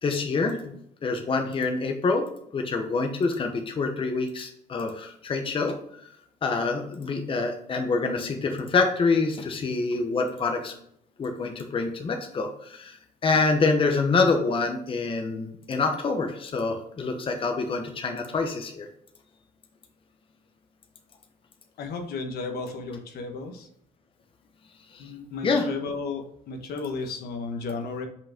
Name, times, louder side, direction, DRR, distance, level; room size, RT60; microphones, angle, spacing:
voice 1, 0.0-2.2 2.5-5.7 6.4-10.7 11.2-13.0 13.2-18.9 24.9-25.1 25.4-25.7, left 4 dB, 30° left, 4 dB, 0.9 m, -26 dB
voice 2, 21.8-23.7 25.0-28.1, left 4 dB, 70° left, 4 dB, 1.2 m, -34 dB
5.4 x 5.2 x 3.6 m, 0.69 s
cardioid pair, 110°, 17 cm